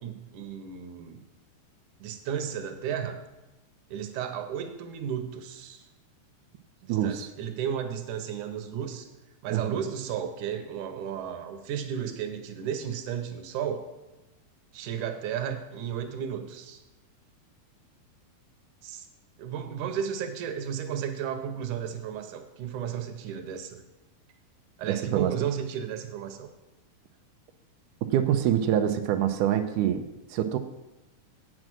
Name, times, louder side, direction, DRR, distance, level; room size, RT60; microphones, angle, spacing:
voice 1, 0.0-1.2 2.0-3.2 3.9-5.8 6.8-9.1 9.4-13.9 14.7-16.8 18.8-19.1 19.4-23.8 24.8-26.5, right 8 dB, 70° right, 7 dB, 2.1 m, -33 dB
voice 2, 6.9-7.3 9.5-9.8 24.9-25.3 28.1-30.6, right 10 dB, 90° right, 6 dB, 1.8 m, -26 dB
8.6 x 7.5 x 6.2 m, 1.0 s
omnidirectional pair, 4.2 m